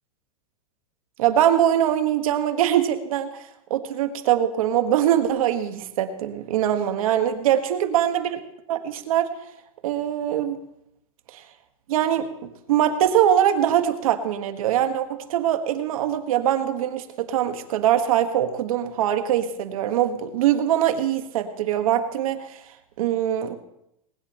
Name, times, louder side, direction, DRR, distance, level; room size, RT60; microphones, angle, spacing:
voice 1, 1.2-3.3 3.7-8.4 8.7-9.3 9.8-10.6 11.3-11.4 11.9-22.5 23.0-23.6, right 11 dB, 70° right, 7 dB, 1.5 m, -22 dB
20.0 x 9.8 x 4.3 m, 0.82 s
supercardioid pair, 165°, 19 cm